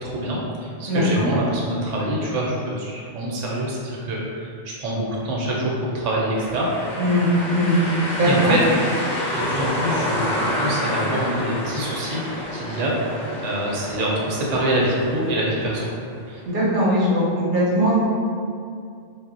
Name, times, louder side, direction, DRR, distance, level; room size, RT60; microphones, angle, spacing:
voice 1, 0.0-6.7 8.2-8.6 9.3-12.2 12.5-12.9 13.4-15.9 16.3-16.4, right 1 dB, 80° right, -3 dB, 0.9 m, -25 dB
voice 2, 0.9-1.3 7.0-7.8 8.2-8.5 16.5-18.0, equal, 50° right, -7 dB, 0.7 m, -20 dB
sound 1, 6.3-16.1, left 1 dB, 55° left, 0.5 m, -28 dB
2.0 x 2.0 x 3.6 m, 2.3 s
omnidirectional pair, 1.2 m